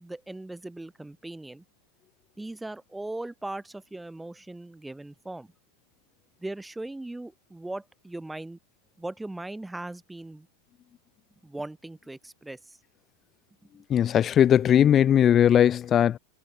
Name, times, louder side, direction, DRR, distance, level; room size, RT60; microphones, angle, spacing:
voice 1, 0.0-1.6 2.4-5.5 6.4-8.6 9.0-10.5 11.4-12.8, right 2 dB, 5° right, 1.2 m, -39 dB
voice 2, 13.9-16.2, left 10 dB, 25° left, 0.6 m, -19 dB
figure-of-eight pair, 90°, 0 cm